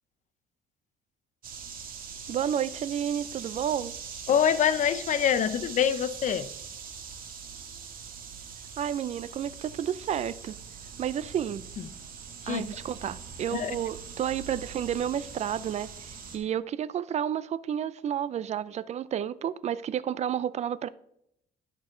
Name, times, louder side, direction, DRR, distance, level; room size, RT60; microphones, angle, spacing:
sound 1, 1.4-16.4, right 6 dB, 60° right, 1.8 m, -42 dB
voice 1, 2.3-3.9 8.8-10.6 11.0-11.6 12.5-20.9, right 9 dB, 40° right, 0.5 m, -31 dB
voice 2, 4.3-6.5 12.4-12.6 13.5-13.7, left 8 dB, 45° left, 0.7 m, -25 dB
11.0 x 6.3 x 3.8 m
cardioid pair, 110°, 17 cm